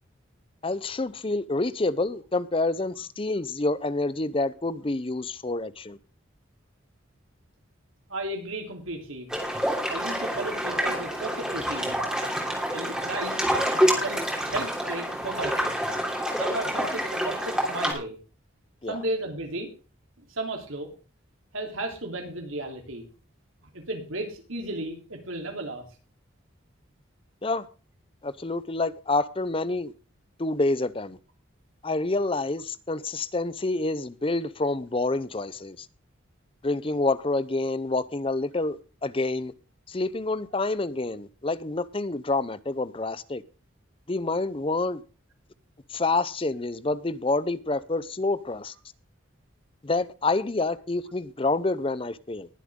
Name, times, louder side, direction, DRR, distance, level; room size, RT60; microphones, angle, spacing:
voice 1, 0.6-6.0 18.8-19.0 27.4-27.6 28.2-29.9 30.4-31.2 31.8-35.9 36.6-39.5 39.9-43.4 44.1-45.0 45.9-48.7 49.8-52.5, left 2 dB, 25° left, 0.6 m, -28 dB
voice 2, 8.1-9.3 9.6-12.1 12.7-15.7 16.4-18.2 18.9-19.7 20.2-20.9 21.5-23.0 23.7-25.8, right 2 dB, 90° right, 3.5 m, -34 dB
sound 1, 9.3-17.9, equal, 5° right, 3.1 m, -27 dB
20.5 x 7.6 x 3.7 m
head